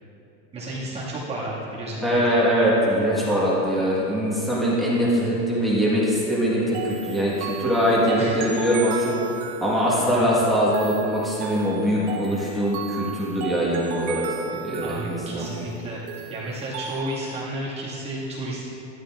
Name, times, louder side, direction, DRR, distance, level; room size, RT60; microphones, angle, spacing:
voice 1, 0.5-2.2 8.2-8.5 10.0-10.3 14.7-16.0 16.3-18.7, right 1 dB, 20° right, -8 dB, 2.1 m, -32 dB
voice 2, 2.0-9.1 9.6-14.2 14.6-15.5, equal, ahead, -8 dB, 1.5 m, -22 dB
sound 1, 6.7-17.4, right 7 dB, 70° right, 1.3 m, -36 dB
13.0 x 12.5 x 2.5 m, 2.8 s
supercardioid pair, 170°, 34 cm